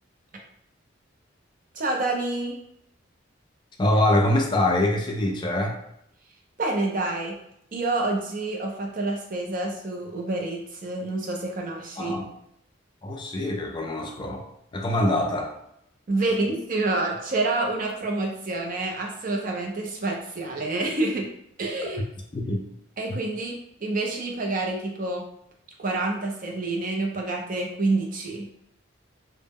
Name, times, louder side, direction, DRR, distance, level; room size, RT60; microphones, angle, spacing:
voice 1, 1.7-2.6 6.6-7.4 7.7-12.1 16.1-21.3 21.6-22.0 23.0-25.2 25.8-28.5, right 2 dB, 40° right, 0 dB, 0.5 m, -28 dB
voice 2, 3.8-5.8 12.0-12.2 13.0-14.5 14.7-15.5 22.3-22.6, left 1 dB, 25° left, 1 dB, 0.3 m, -24 dB
2.1 x 2.0 x 3.4 m, 0.75 s
head